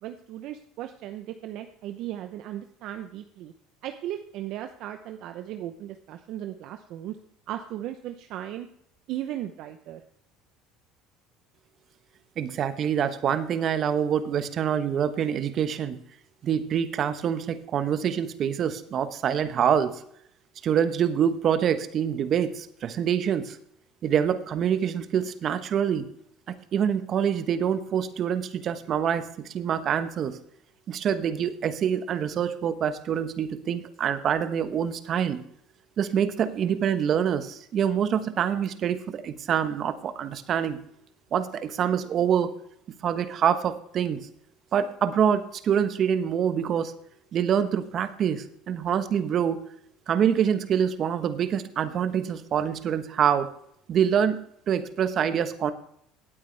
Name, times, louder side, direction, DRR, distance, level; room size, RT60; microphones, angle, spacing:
voice 1, 0.0-3.5 3.8-7.2 7.5-8.7 9.1-10.0, right 12 dB, 65° right, 7 dB, 0.8 m, -36 dB
voice 2, 12.4-16.0 16.4-20.0 20.6-23.6 24.0-26.1 26.7-30.4 30.9-35.4 36.0-40.8 41.3-42.5 43.0-44.2 44.7-46.9 47.3-49.6 50.1-53.5 53.9-55.7, right 8 dB, 50° right, 10 dB, 1.2 m, -25 dB
18.0 x 8.7 x 3.4 m, 0.70 s
supercardioid pair, 85°, 0 cm